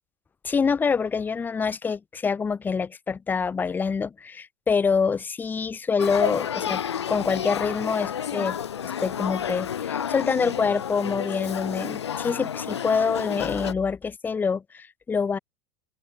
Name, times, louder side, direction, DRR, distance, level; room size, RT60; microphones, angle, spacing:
voice 1, 0.4-6.8 7.1-8.6 9.0-15.4, left 5 dB, 15° left, 0.4 m, -26 dB
Male speech man speaking / Child speech kid speaking / Conversation, 6.0-13.7, left 8 dB, 75° left, 0.4 m, -30 dB
figure-of-eight pair, 80°, 14 cm